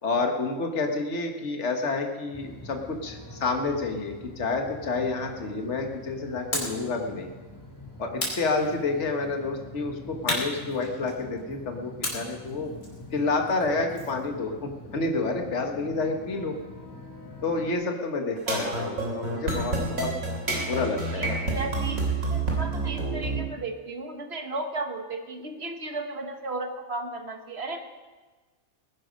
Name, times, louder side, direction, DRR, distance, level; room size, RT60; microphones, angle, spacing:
voice 1, 0.0-7.3 8.0-12.7 13.1-16.5 17.4-20.1 20.7-21.4, left 3 dB, 55° left, 3 dB, 1.8 m, -29 dB
sound 1, 2.3-17.7, left 1 dB, 15° left, 3.1 m, -45 dB
sound 2, 6.5-6.9 8.2-9.1 10.3-11.4 12.0-14.2, left 1 dB, 90° left, 3.7 m, -34 dB
sound 3, 18.4-23.4, right 2 dB, 70° right, 3.5 m, -28 dB
voice 2, 18.5-18.8 20.6-20.7 21.1-22.0 22.3-27.8, right 2 dB, 45° right, 5 dB, 1.6 m, -35 dB
20.0 x 10.5 x 5.2 m, 1.3 s
omnidirectional pair, 1.5 m